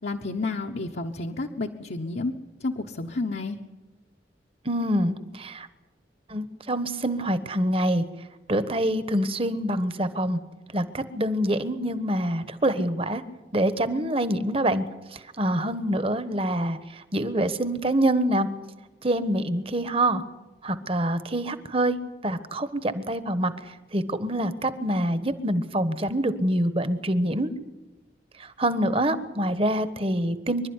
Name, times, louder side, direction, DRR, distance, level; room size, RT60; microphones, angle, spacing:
voice 1, 0.0-2.3 2.6-3.6, left 3 dB, 70° left, 1 dB, 1.1 m, -30 dB
voice 2, 4.6-5.7 6.3-8.0 8.5-10.4 10.7-13.2 13.5-14.8 15.4-18.5 19.0-20.2 20.6-22.0 22.2-23.5 23.9-27.5 28.6-30.7, right 1 dB, 30° right, 12 dB, 1.2 m, -25 dB
26.0 x 12.0 x 9.7 m, 1.2 s
head